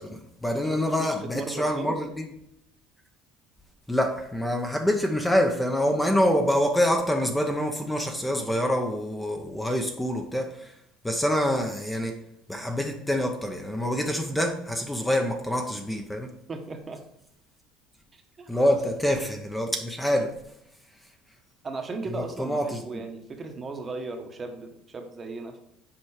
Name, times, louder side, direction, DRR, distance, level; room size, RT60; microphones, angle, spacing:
voice 1, 0.0-2.2 3.9-10.7 11.0-12.2 12.5-16.3 18.5-20.3 22.1-23.0, equal, 5° left, 3 dB, 0.8 m, -26 dB
voice 2, 0.5-2.0 16.5-17.0 18.1-18.7 21.6-25.6, right 3 dB, 25° right, 5 dB, 1.1 m, -37 dB
7.2 x 4.6 x 4.8 m, 0.76 s
cardioid pair, 125°, 0 cm